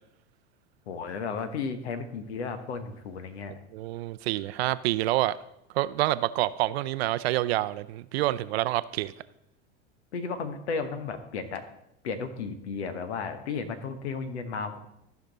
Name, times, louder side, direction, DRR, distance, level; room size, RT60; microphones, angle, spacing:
voice 1, 0.9-3.5 10.1-11.6 12.0-14.8, left 5 dB, 80° left, 10 dB, 1.2 m, -34 dB
voice 2, 3.7-5.4 5.7-9.1, right 16 dB, 70° right, 16 dB, 0.5 m, -27 dB
14.5 x 5.3 x 4.0 m, 0.84 s
hypercardioid pair, 85°, 33 cm